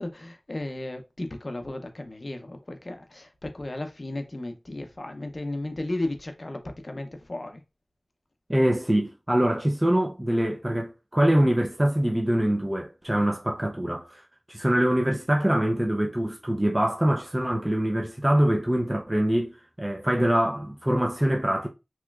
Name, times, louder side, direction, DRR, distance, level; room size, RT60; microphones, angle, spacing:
voice 1, 0.0-7.6, left 1 dB, 50° left, 0.6 m, -34 dB
voice 2, 8.5-21.7, right 1 dB, 20° right, 0.5 m, -24 dB
3.0 x 3.0 x 2.3 m
wide cardioid pair, 45°, 0 cm